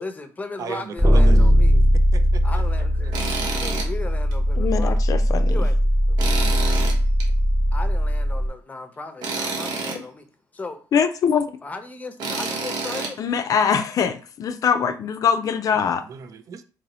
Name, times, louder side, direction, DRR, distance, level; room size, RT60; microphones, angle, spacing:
voice 1, 0.0-1.8 2.4-3.1 3.5-5.0 5.5-5.8 7.7-10.3 10.5-10.8 11.6-13.2, left 3 dB, 20° left, 0.7 m, -36 dB
voice 2, 0.6-1.4 1.9-2.4 3.0-3.2 6.1-6.5 15.7-16.6, right 7 dB, 55° right, 0.4 m, -37 dB
sound 1, 1.0-8.5, equal, 15° right, 1.0 m, -19 dB
Tools, 3.1-3.9 4.3-4.4 6.2-7.3 9.2-10.0 12.2-13.1, right 3 dB, 80° right, 1.0 m, -28 dB
voice 3, 4.6-5.7 10.9-11.4 13.2-16.0, left 7 dB, 55° left, 0.4 m, -22 dB
3.0 x 2.7 x 4.2 m
cardioid pair, 90°, 7 cm